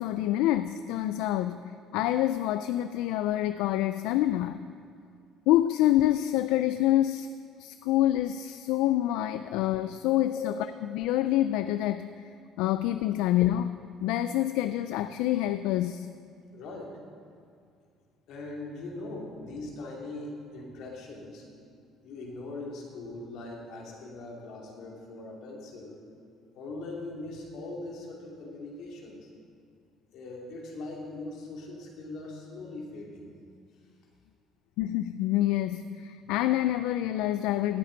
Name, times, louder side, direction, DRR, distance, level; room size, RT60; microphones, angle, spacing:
voice 1, 0.0-1.6 1.9-4.6 5.5-7.3 7.6-10.5 10.9-12.1 12.6-16.1 34.8-37.8, left 13 dB, 85° left, 11 dB, 0.3 m, -27 dB
voice 2, 16.5-16.9 18.3-21.4 22.0-26.0 26.5-29.3 30.1-33.3, left 2 dB, 70° left, -1 dB, 2.6 m, -41 dB
17.5 x 8.7 x 4.0 m, 2.3 s
cardioid pair, 125°, 0 cm